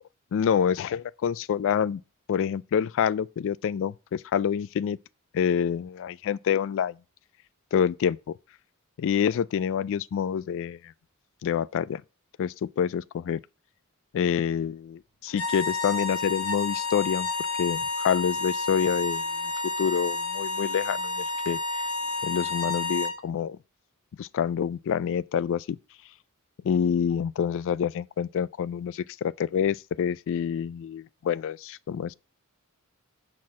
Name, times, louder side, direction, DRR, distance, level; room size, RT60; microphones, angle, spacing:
voice 1, 0.3-2.0 2.3-5.0 5.3-7.0 7.7-8.3 9.0-10.9 11.4-12.0 12.4-13.4 14.1-17.3 17.6-19.5 19.8-21.6 22.2-23.6 24.2-25.8 26.6-32.1, left 8 dB, 60° left, 0.3 m, -27 dB
sound 1, 15.3-23.2, left 3 dB, 85° left, 1.4 m, -30 dB
6.2 x 4.4 x 6.2 m
head